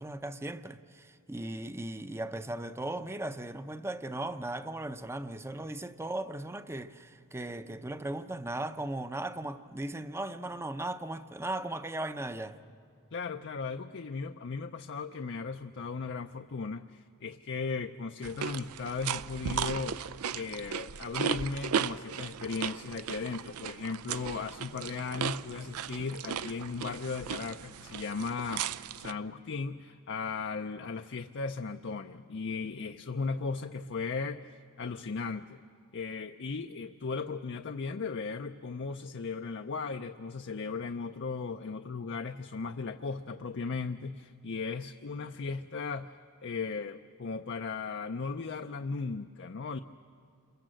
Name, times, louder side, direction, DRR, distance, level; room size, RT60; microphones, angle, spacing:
voice 1, 0.0-12.6, right 1 dB, 10° right, 0.6 m, -37 dB
voice 2, 13.1-20.0 20.3-35.6 35.9-46.1 46.4-49.8, left 4 dB, 55° left, 0.6 m, -36 dB
sound 1, 18.2-29.1, right 7 dB, 85° right, 0.5 m, -36 dB
28.5 x 22.5 x 7.7 m
head